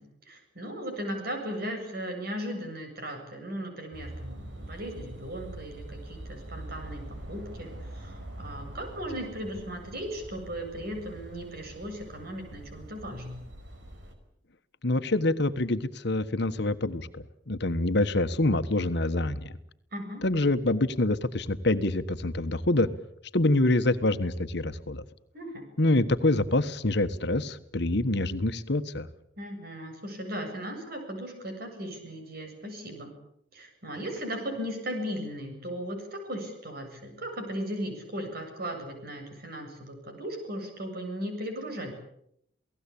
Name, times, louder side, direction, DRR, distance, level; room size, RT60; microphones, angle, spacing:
voice 1, 0.0-13.4 19.9-20.2 25.3-25.6 29.4-33.1 33.5-41.9, equal, 55° right, 4 dB, 7.9 m, -37 dB
sound 1, 3.9-14.1, right 1 dB, 70° right, 4.9 m, -44 dB
voice 2, 14.8-19.5 20.2-22.9 23.3-25.0 25.8-29.1, left 2 dB, 65° left, 10 dB, 1.4 m, -26 dB
28.5 x 18.0 x 8.6 m, 0.74 s
head